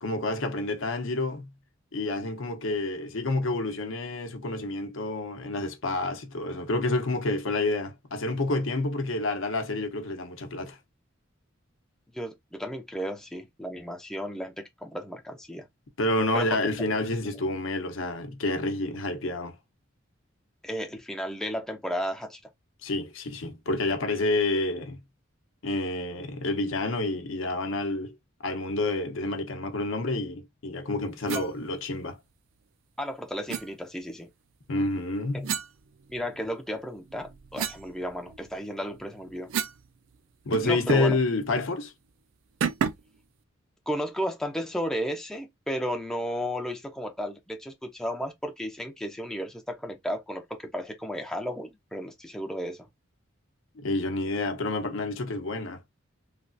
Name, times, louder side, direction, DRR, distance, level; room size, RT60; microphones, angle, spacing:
voice 1, 0.0-1.5 1.9-10.8 16.0-19.6 22.8-25.0 25.6-28.2 28.4-32.2 34.7-35.5 40.4-41.9 53.7-55.8, left 2 dB, 75° left, 0.7 m, -29 dB
voice 2, 12.1-15.7 16.3-16.6 17.3-17.4 20.6-22.5 31.3-31.4 33.0-34.3 36.1-39.5 40.6-41.2 43.9-52.9, equal, 5° left, 0.4 m, -34 dB
sound 1, 31.3-31.5 33.5-33.7 35.4-36.5 37.0-39.9 40.1-40.2 40.5-41.2 41.5-41.7 42.6-43.2, right 7 dB, 75° right, 0.4 m, -33 dB
3.2 x 2.3 x 2.5 m
head